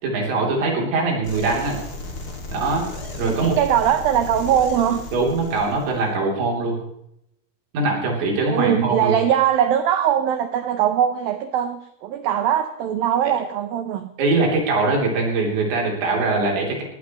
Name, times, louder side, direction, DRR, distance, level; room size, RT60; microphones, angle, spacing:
voice 1, 0.0-1.8 2.5-2.9 3.2-3.6 5.1-6.8 7.7-9.2 14.2-16.8, right 3 dB, 70° right, -1 dB, 5.7 m, -22 dB
sound 1, 1.2-6.1, left 2 dB, 30° left, 1.8 m, -35 dB
voice 2, 3.2-5.0 8.5-14.1, right 9 dB, 90° right, 8 dB, 2.0 m, -21 dB
19.5 x 17.0 x 3.2 m, 0.78 s
omnidirectional pair, 5.4 m